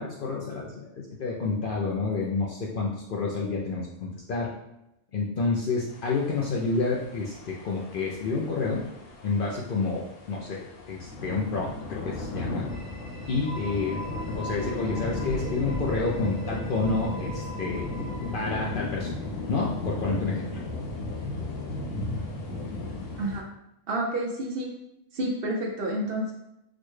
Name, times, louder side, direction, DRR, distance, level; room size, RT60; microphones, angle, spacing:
voice 1, 0.0-4.6 5.1-8.9 9.2-12.7 13.3-14.0 14.4-17.9 18.3-19.1 19.5-20.5 20.9-21.0, left 3 dB, 60° left, -3 dB, 0.6 m, -29 dB
sound 1, 5.9-23.4, left 2 dB, 80° left, 1.1 m, -35 dB
sound 2, 12.6-19.4, right 1 dB, 10° left, 0.9 m, -42 dB
voice 2, 23.9-24.7 25.1-26.3, right 1 dB, 60° right, -1 dB, 0.7 m, -29 dB
4.1 x 2.1 x 3.1 m, 0.86 s
omnidirectional pair, 1.3 m